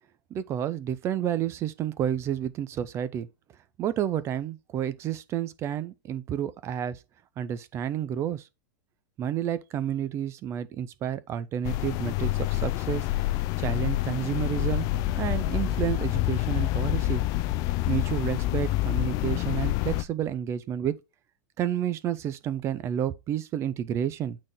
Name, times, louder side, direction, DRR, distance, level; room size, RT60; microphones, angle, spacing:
voice 1, 0.3-3.3 3.8-7.0 7.4-8.5 9.2-13.1 13.6-14.9 15.2-17.3 17.9-21.0 21.6-24.4, right 10 dB, 25° right, 0.6 m, -30 dB
sound 1, 11.6-20.0, left 15 dB, 30° left, 0.4 m, -27 dB
8.6 x 4.1 x 3.8 m
supercardioid pair, 155°, 11 cm